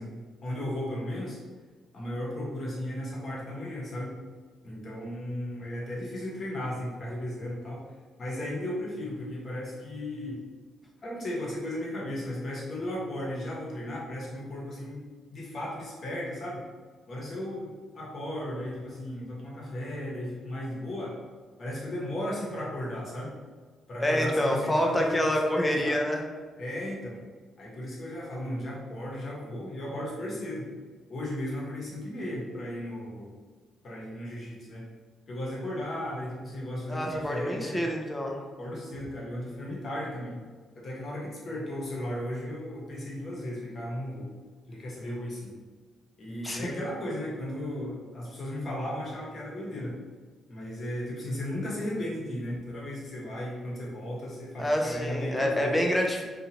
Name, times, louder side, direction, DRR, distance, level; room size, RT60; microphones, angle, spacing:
voice 1, 0.0-1.4 1.9-4.1 4.6-7.8 8.2-10.4 11.0-15.0 15.3-16.6 17.1-21.2 21.6-23.3 23.9-25.2 25.5-26.0 26.6-27.2 27.6-30.7 31.1-33.3 33.8-34.9 35.3-37.9 38.6-40.4 40.7-44.3 44.7-45.5 46.2-50.0 50.5-55.8, left 1 dB, 50° left, -4 dB, 1.0 m, -35 dB
voice 2, 24.0-26.2 36.9-38.4 46.4-46.8 54.6-56.2, equal, 15° left, 0 dB, 0.5 m, -27 dB
2.6 x 2.4 x 2.9 m, 1.4 s
cardioid pair, 90°, 0 cm